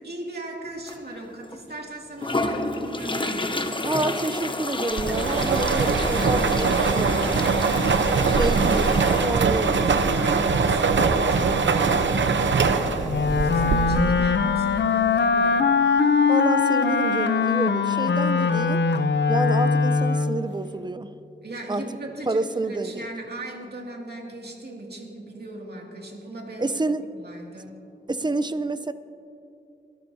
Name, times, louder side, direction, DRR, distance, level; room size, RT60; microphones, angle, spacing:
voice 1, 0.0-3.8 8.3-8.7 9.3-15.8 21.4-27.7, right 1 dB, 60° right, 0 dB, 2.4 m, -38 dB
sound 1, 0.9-1.0 1.5-1.6 2.2-9.3, left 2 dB, 25° left, 0.9 m, -30 dB
voice 2, 3.8-7.7 8.2-9.9 16.3-18.8 19.3-21.1 21.7-21.8 22.3-23.1 26.6-27.0 28.1-28.9, right 2 dB, 25° right, 12 dB, 0.6 m, -28 dB
sound 2, 5.0-14.3, right 4 dB, 85° right, 0.8 m, -22 dB
Wind instrument woodwind instrument, 13.1-20.5, left 5 dB, 70° left, 0.6 m, -21 dB
24.0 x 13.5 x 2.8 m, 2.7 s
wide cardioid pair, 70°, 19 cm